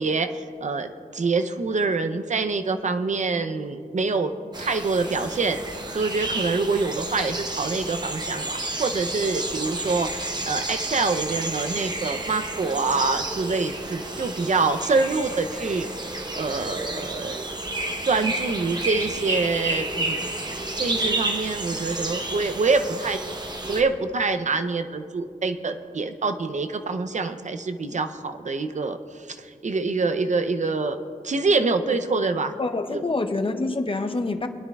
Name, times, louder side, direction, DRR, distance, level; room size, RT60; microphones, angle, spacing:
voice 1, 0.0-4.3 4.6-5.6 5.9-15.9 16.4-17.5 18.1-20.3 20.8-23.2 23.6-29.0 29.3-31.0 31.2-32.5 32.9-33.0, right 4 dB, 50° right, 8 dB, 0.6 m, -25 dB
sound 1, 4.5-23.8, right 2 dB, 30° right, 0.9 m, -31 dB
voice 2, 32.6-34.5, left 3 dB, 35° left, 7 dB, 0.7 m, -26 dB
22.5 x 9.9 x 2.4 m, 2.4 s
wide cardioid pair, 85°, 15 cm